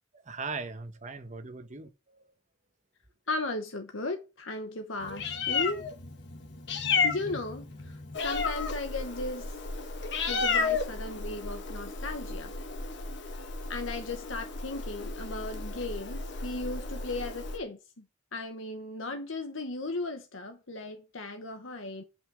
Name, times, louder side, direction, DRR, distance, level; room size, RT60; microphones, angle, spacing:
voice 1, 0.2-2.3, right 4 dB, 35° right, 1.0 m, -39 dB
voice 2, 3.3-5.9 7.0-7.7 8.2-9.5 10.3-12.5 13.7-17.8 18.3-22.0, left 2 dB, 75° left, 1.1 m, -36 dB
Meow, 5.0-17.6, left 4 dB, 60° left, 1.3 m, -33 dB
7.9 x 5.8 x 6.3 m
head